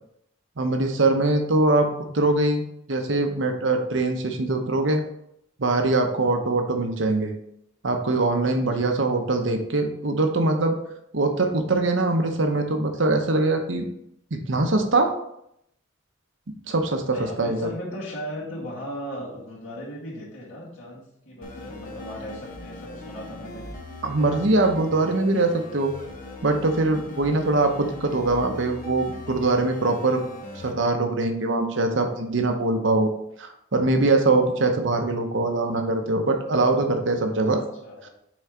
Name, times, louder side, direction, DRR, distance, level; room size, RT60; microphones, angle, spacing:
voice 1, 0.6-2.6 2.9-5.0 5.6-7.3 7.8-10.8 11.1-13.9 14.3-15.1 16.7-17.7 24.0-25.9 26.4-30.2 30.5-33.1 33.4-37.6, right 2 dB, 70° right, 5 dB, 0.9 m, -22 dB
voice 2, 17.1-23.7 37.5-38.1, equal, 80° left, -12 dB, 2.2 m, -37 dB
sound 1, 21.4-30.7, left 2 dB, 45° left, 1.0 m, -40 dB
6.3 x 4.4 x 3.7 m, 0.75 s
head